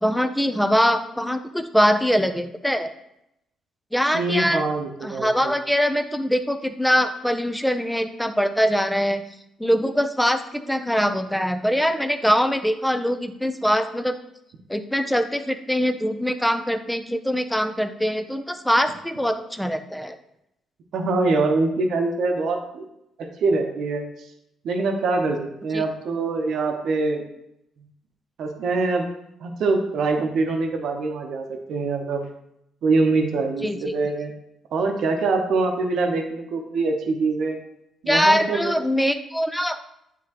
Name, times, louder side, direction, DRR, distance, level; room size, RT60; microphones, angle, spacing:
voice 1, 0.0-2.9 3.9-4.7 5.0-9.2 9.6-14.2 14.7-20.2 25.7-25.8 33.6-33.8 38.1-39.8, equal, 5° left, 8 dB, 0.5 m, -22 dB
voice 2, 4.1-5.5 20.9-22.8 23.2-24.0 24.6-27.2 28.4-29.1 29.4-32.3 32.8-34.3 34.7-37.6 38.0-38.7, right 3 dB, 70° right, 3 dB, 0.9 m, -24 dB
9.6 x 3.7 x 2.9 m, 0.80 s
cardioid pair, 95°, 0 cm